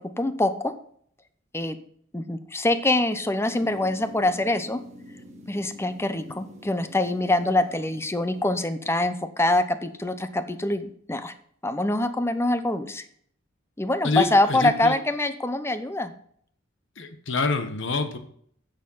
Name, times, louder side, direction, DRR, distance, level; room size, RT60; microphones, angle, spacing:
voice 1, 0.2-0.7 1.5-1.8 2.1-4.8 5.5-11.3 11.6-13.0 13.8-16.1, left 2 dB, 15° left, 10 dB, 0.7 m, -24 dB
sound 1, 3.5-8.7, equal, 35° right, 1.6 m, -47 dB
voice 2, 14.0-14.9 17.0-18.2, left 3 dB, 65° left, 8 dB, 1.2 m, -26 dB
8.8 x 6.6 x 5.6 m, 0.62 s
head